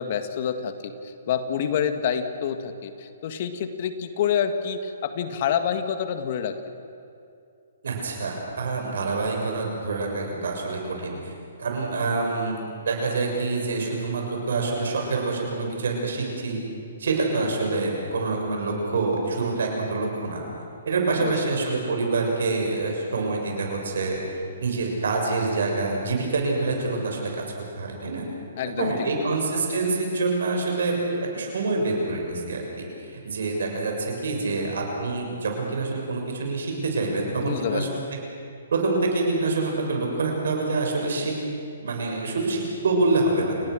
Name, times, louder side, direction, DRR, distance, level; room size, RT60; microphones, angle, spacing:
voice 1, 0.0-6.6 21.2-21.5 28.6-29.5 37.4-38.0, left 8 dB, 50° left, 8 dB, 1.8 m, -28 dB
voice 2, 7.8-11.2 11.6-16.6 17.0-20.4 20.8-24.2 24.6-27.4 27.8-28.2 28.6-32.6 33.0-38.0 38.7-41.3 41.8-43.5, right 3 dB, 70° right, 1 dB, 6.8 m, -26 dB
29.0 x 19.0 x 6.5 m, 2.6 s
hypercardioid pair, 135°, 0 cm